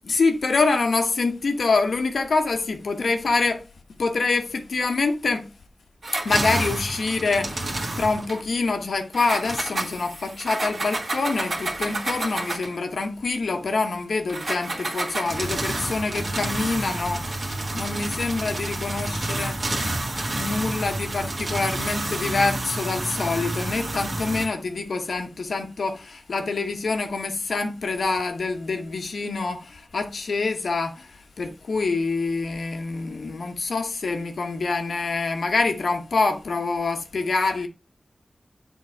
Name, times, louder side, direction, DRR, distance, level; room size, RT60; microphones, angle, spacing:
voice 1, 0.0-3.6 4.0-5.5 6.2-37.7, left 3 dB, 90° left, 1.1 m, -26 dB
sound 1, 6.0-8.4 9.1-12.8 14.3-24.5, right 2 dB, 60° right, 1.7 m, -29 dB
7.4 x 4.0 x 4.6 m
wide cardioid pair, 85°, 0 cm